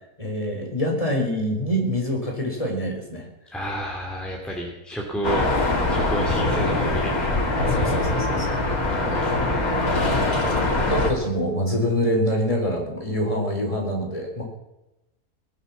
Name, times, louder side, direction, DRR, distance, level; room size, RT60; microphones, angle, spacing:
voice 1, 0.2-3.3 5.4-5.5 6.4-6.5 7.7-8.6 10.4-14.4, equal, 20° left, 0 dB, 4.0 m, -25 dB
voice 2, 3.5-5.5 5.9-8.1 8.8-9.9, right 1 dB, ahead, -1 dB, 2.5 m, -32 dB
sound 1, 5.2-11.1, left 2 dB, 65° left, 3.1 m, -22 dB
19.5 x 9.8 x 7.1 m, 0.94 s
omnidirectional pair, 1.6 m